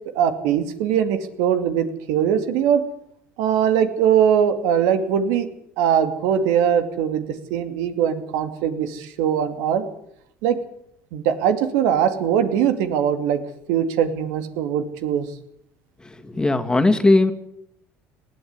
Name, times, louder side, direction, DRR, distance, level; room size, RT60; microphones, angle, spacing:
voice 1, 0.1-2.8 3.4-5.5 5.8-9.8 10.4-10.6 11.1-13.4 13.7-15.3, right 8 dB, 80° right, 8 dB, 2.5 m, -21 dB
voice 2, 16.3-17.3, left 2 dB, 15° left, 7 dB, 2.3 m, -17 dB
20.0 x 14.0 x 9.6 m, 0.75 s
supercardioid pair, 90°, 6 cm